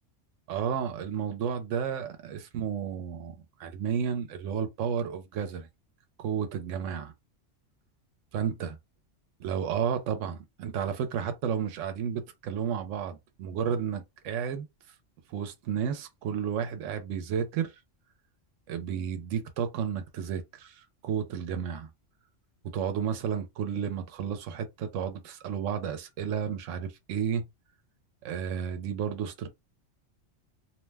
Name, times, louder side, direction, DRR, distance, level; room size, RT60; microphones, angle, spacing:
voice 1, 0.5-5.7 6.2-7.1 8.3-8.8 9.4-14.7 15.3-17.7 18.7-21.9 22.7-27.5 28.2-29.5, right 7 dB, 75° right, 1.0 m, -32 dB
2.8 x 2.1 x 3.3 m
omnidirectional pair, 1.3 m